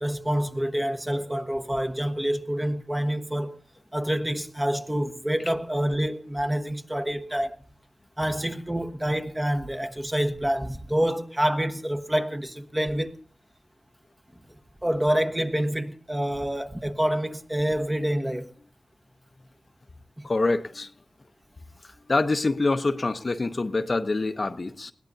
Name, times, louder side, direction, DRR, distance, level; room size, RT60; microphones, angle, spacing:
voice 1, 0.0-3.6 3.9-7.6 8.2-13.2 14.5-18.5 20.2-20.3, equal, 15° right, 1.2 m, -27 dB
voice 2, 20.2-20.9 22.1-24.9, left 3 dB, 45° left, 0.8 m, -25 dB
21.0 x 16.5 x 2.7 m
cardioid pair, 55°, 0 cm